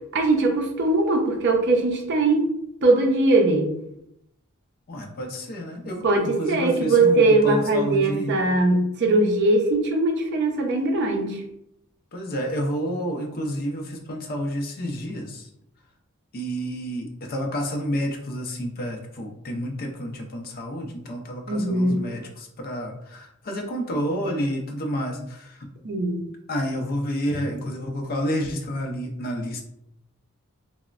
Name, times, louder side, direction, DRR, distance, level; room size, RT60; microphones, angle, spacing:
voice 1, 0.1-2.5 2.8-3.7 6.0-11.4 21.5-22.0 25.8-26.2, right 2 dB, 55° right, 2 dB, 0.5 m, -20 dB
voice 2, 4.9-8.4 12.1-15.4 16.3-25.4 26.5-29.6, equal, 45° left, 3 dB, 0.5 m, -29 dB
3.0 x 2.0 x 2.4 m, 0.77 s
head